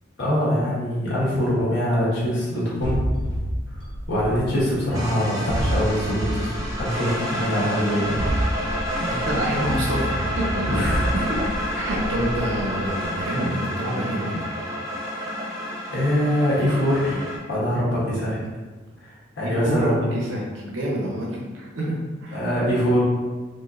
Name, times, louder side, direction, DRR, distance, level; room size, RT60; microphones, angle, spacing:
voice 1, 0.2-3.1 4.1-8.2 10.7-11.0 15.9-17.2 17.5-18.4 19.0-20.2 22.3-23.0, equal, 65° left, -7 dB, 1.3 m, -23 dB
sound 1, 2.8-4.9 5.5-7.3 8.0-13.0, right 1 dB, 25° left, 0.9 m, -29 dB
sound 2, 4.9-17.4, equal, 15° right, 0.7 m, -29 dB
voice 2, 9.0-10.1 10.4-11.4 11.7-14.5 19.4-22.5, right 1 dB, 80° right, -3 dB, 0.7 m, -27 dB
4.2 x 2.7 x 2.4 m, 1.3 s
head